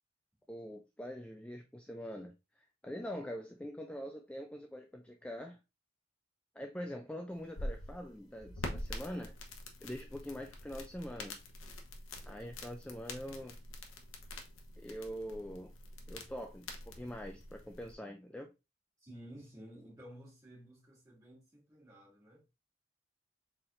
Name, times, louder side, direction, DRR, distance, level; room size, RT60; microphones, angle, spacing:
voice 1, 0.5-5.6 6.6-9.3 9.8-11.4 12.3-13.6 14.8-15.7 16.1-18.5, equal, 5° left, 0.3 m, -44 dB
sound 1, 7.3-17.9, left 1 dB, 80° left, 0.9 m, -46 dB
voice 2, 19.0-22.4, equal, 15° right, 2.6 m, -53 dB
4.2 x 4.1 x 2.5 m
head